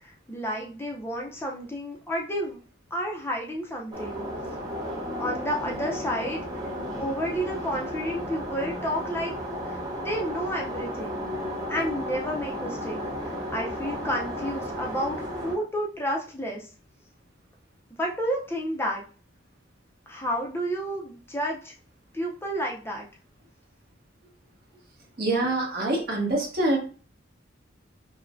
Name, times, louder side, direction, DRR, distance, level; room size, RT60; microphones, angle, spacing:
voice 1, 0.0-2.6 2.9-4.3 5.2-6.4 6.9-9.3 9.7-11.3 11.7-16.7 18.0-19.0 20.1-21.7 22.1-23.1, equal, 10° left, -1 dB, 0.5 m, -31 dB
sound 1, 3.9-15.5, equal, 20° right, 1.2 m, -33 dB
voice 2, 25.2-26.8, right 2 dB, 50° right, -1 dB, 1.3 m, -25 dB
5.4 x 2.1 x 2.5 m, 0.38 s
head